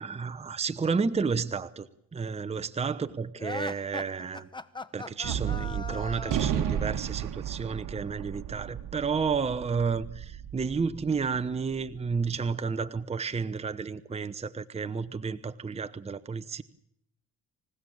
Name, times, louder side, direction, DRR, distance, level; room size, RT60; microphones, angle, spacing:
voice 1, 0.0-4.5 4.9-16.6, right 5 dB, 20° right, 0.9 m, -31 dB
sound 1, 3.4-6.9, left 2 dB, 15° left, 1.0 m, -40 dB
Gunshot gunfire, 5.2-11.8, right 10 dB, 65° right, 1.5 m, -33 dB
26.5 x 16.0 x 8.6 m
cardioid pair, 110°, 34 cm